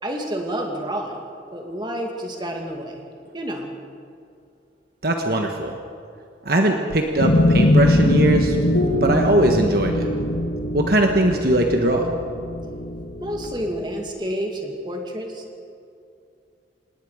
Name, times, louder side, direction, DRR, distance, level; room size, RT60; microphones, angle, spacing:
voice 1, 0.0-1.2 1.5-3.0 3.3-3.7 13.2-15.4, right 1 dB, 25° right, 1 dB, 2.4 m, -29 dB
voice 2, 5.0-5.8 6.4-8.6 9.0-10.1 10.7-12.1, right 1 dB, 55° right, 3 dB, 1.4 m, -20 dB
sound 1, 7.2-13.7, left 1 dB, 65° left, 1.7 m, -21 dB
26.5 x 19.5 x 5.1 m, 2.5 s
head